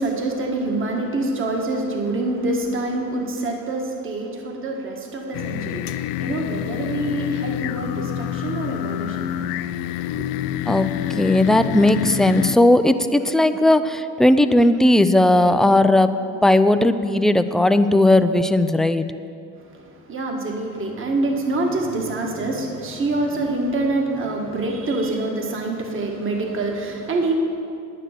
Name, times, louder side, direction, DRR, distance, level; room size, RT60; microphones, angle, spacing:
voice 1, 0.0-9.5 10.2-10.3 19.6-27.4, right 2 dB, 35° right, 2 dB, 1.6 m, -26 dB
sound 1, 5.3-12.6, left 12 dB, 85° left, 0.5 m, -27 dB
voice 2, 10.7-16.1 16.4-19.0, left 1 dB, ahead, 10 dB, 0.3 m, -17 dB
10.0 x 9.7 x 6.6 m, 2.6 s
cardioid pair, 105°, 36 cm